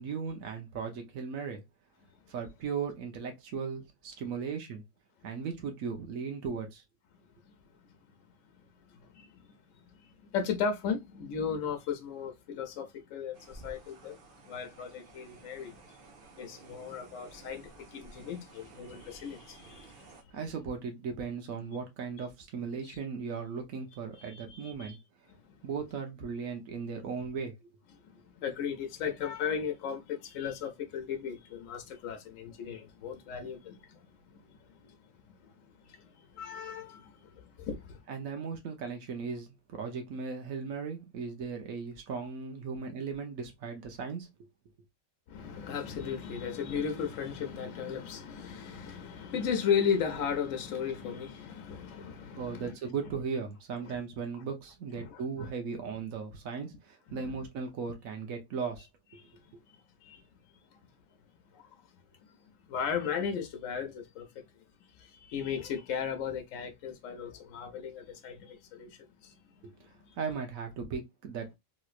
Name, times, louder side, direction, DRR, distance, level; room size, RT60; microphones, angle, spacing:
voice 1, 0.0-1.6 2.3-4.8 5.2-6.8 20.3-25.0 25.6-27.7 38.1-44.3 52.4-58.9 59.1-59.2 69.6-69.7 70.2-71.6, right 5 dB, 85° right, 1.2 m, -37 dB
voice 2, 8.9-16.0 16.4-20.2 22.8-23.0 24.1-24.9 25.3-25.7 28.0-38.0 45.3-52.7 53.8-54.0 54.9-55.5 56.7-56.8 57.1-57.4 59.2-60.2 60.7-60.9 61.5-61.8 62.3-64.4 64.8-70.2, left 7 dB, 75° left, 1.0 m, -36 dB
sound 1, 13.3-20.2, right 3 dB, 50° right, 0.9 m, -54 dB
3.1 x 3.0 x 2.4 m
omnidirectional pair, 1.4 m